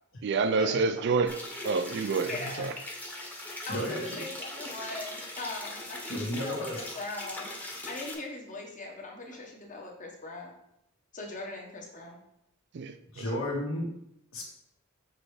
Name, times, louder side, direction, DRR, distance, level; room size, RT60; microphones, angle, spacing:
voice 1, 0.2-2.7 12.7-13.2, right 4 dB, 55° right, 11 dB, 0.4 m, -28 dB
sound 1, 1.3-8.1, left 1 dB, 10° left, 0.9 m, -40 dB
voice 2, 2.3-2.7 3.7-7.5 7.9-10.5 11.1-12.2, left 2 dB, 40° left, 0 dB, 1.1 m, -40 dB
voice 3, 3.7-4.2 6.1-6.8 13.1-13.9 14.3-14.4, left 1 dB, 75° left, -2 dB, 1.7 m, -32 dB
6.4 x 3.2 x 4.8 m, 0.79 s
head